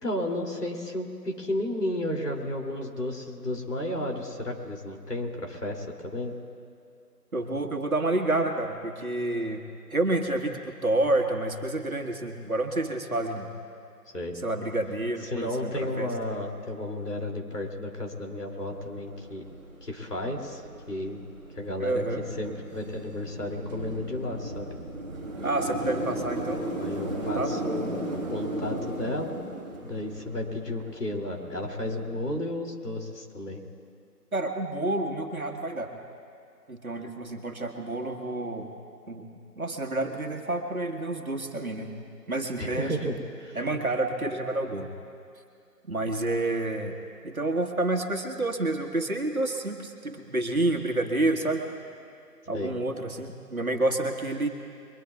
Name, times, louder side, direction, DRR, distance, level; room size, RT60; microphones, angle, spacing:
voice 1, 0.0-6.3 14.1-14.3 15.2-19.4 19.8-21.2 21.5-24.7 26.8-29.4 29.8-33.6 42.6-43.6 52.5-52.7, left 1 dB, 70° left, 1 dB, 2.9 m, -33 dB
voice 2, 7.3-9.6 9.9-13.5 14.4-16.1 21.8-22.2 25.4-26.6 27.0-27.5 34.3-35.9 36.7-38.7 39.1-39.3 39.6-41.9 42.3-43.0 43.5-44.9 45.9-47.0 47.2-51.7 52.5-54.5, right 2 dB, 60° right, 3 dB, 1.7 m, -29 dB
sound 1, 18.6-32.1, right 1 dB, 25° right, 2.3 m, -36 dB
23.0 x 21.0 x 2.4 m, 2.5 s
figure-of-eight pair, 180°, 49 cm